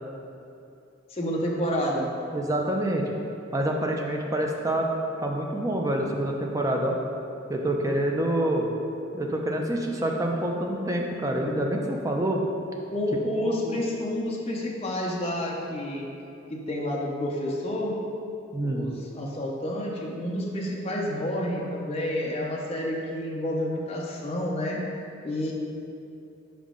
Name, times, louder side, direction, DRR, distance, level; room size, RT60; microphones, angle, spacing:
voice 1, 1.1-2.1 12.9-16.1 16.5-17.9 18.6-24.8 25.2-25.5, left 1 dB, 30° left, -2 dB, 0.6 m, -29 dB
voice 2, 2.3-3.1 3.5-4.9 5.2-6.9 7.5-8.7 9.1-12.4 13.6-13.8 18.5-18.9, right 1 dB, 15° right, 0 dB, 0.4 m, -27 dB
5.5 x 4.9 x 3.7 m, 2.7 s
head